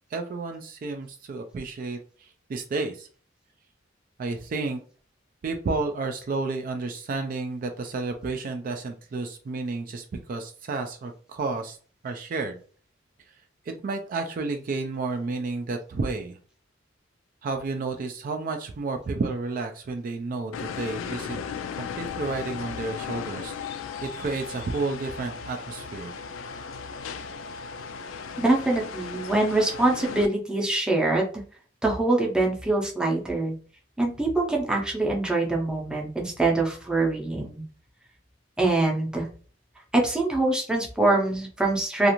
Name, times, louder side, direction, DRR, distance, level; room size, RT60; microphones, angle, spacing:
voice 1, 0.1-3.1 4.2-4.8 5.4-11.8 12.0-12.6 13.7-16.4 17.4-21.4 21.7-26.1, right 3 dB, 45° right, 5 dB, 0.3 m, -31 dB
sound 1, 20.5-30.3, left 6 dB, 85° left, 0.3 m, -36 dB
voice 2, 28.4-31.3 31.8-33.5 34.0-37.6 38.6-39.3 39.9-42.1, right 2 dB, 5° right, -1 dB, 0.6 m, -24 dB
2.5 x 2.4 x 2.9 m, 0.40 s
head